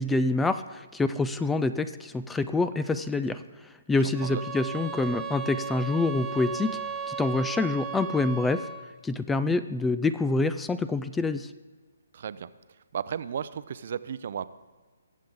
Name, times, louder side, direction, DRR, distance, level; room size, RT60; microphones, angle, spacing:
voice 1, 0.0-3.4 3.9-6.8 7.1-8.7 9.0-11.5, left 3 dB, 5° left, 12 dB, 0.3 m, -26 dB
voice 2, 4.0-4.4 12.1-12.5 12.9-14.5, right 8 dB, 55° right, 15 dB, 0.5 m, -34 dB
sound 1, 4.1-8.9, right 6 dB, 15° right, 1.0 m, -36 dB
21.0 x 7.6 x 3.7 m, 1.4 s
hypercardioid pair, 155°, 0 cm